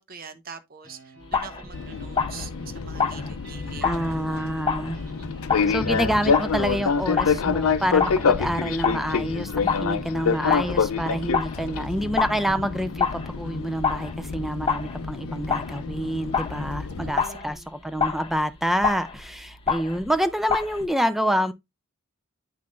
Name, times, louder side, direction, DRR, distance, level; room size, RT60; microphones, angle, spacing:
voice 1, 0.0-4.6 5.1-5.3 16.9-17.9, right 5 dB, 45° right, 0.8 m, -44 dB
sound 1, 0.8-14.8, equal, 75° right, 4.3 m, -50 dB
sound 2, 1.2-20.9, left 6 dB, 25° left, 1.0 m, -30 dB
Fixed-wing aircraft airplane, 1.7-17.1, left 5 dB, 85° left, 0.5 m, -27 dB
voice 2, 3.8-5.0 5.7-21.5, equal, ahead, 0.4 m, -27 dB
8.7 x 5.7 x 2.5 m
head